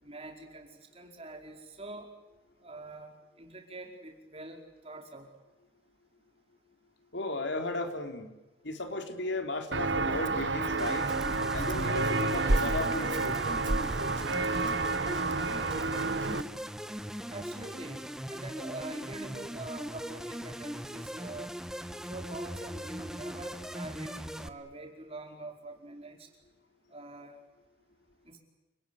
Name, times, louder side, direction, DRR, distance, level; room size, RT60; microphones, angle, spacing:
voice 1, 0.0-2.1 2.6-3.1 3.4-5.3 17.3-21.5 22.1-26.3 26.9-27.4 28.2-28.4, right 2 dB, 30° right, 3 dB, 4.9 m, -44 dB
voice 2, 7.1-8.3 8.6-11.1 11.5-13.6, left 2 dB, 70° left, 5 dB, 3.8 m, -35 dB
Walk footsteps, 9.7-16.4, right 3 dB, 70° right, 1.4 m, -29 dB
sound 1, 10.8-24.5, equal, 5° right, 1.2 m, -40 dB
29.5 x 20.0 x 9.7 m, 1.1 s
head